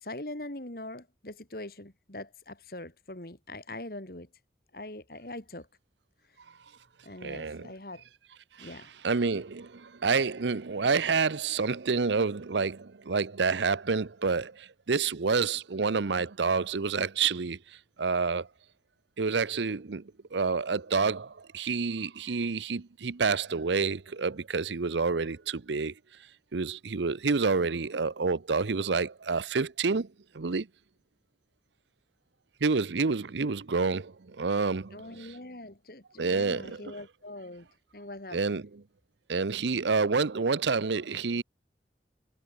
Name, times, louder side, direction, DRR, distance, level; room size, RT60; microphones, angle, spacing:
voice 1, 0.0-4.3 4.7-5.7 7.0-8.0 8.6-8.9 34.9-37.7 37.9-38.6, left 1 dB, 55° left, 2.5 m, -42 dB
voice 2, 7.2-7.7 8.6-17.6 18.0-18.5 19.2-25.9 26.5-30.1 30.3-30.7 32.6-35.3 36.2-36.9 38.3-38.8 39.3-41.4, right 4 dB, 85° right, 0.7 m, -28 dB
head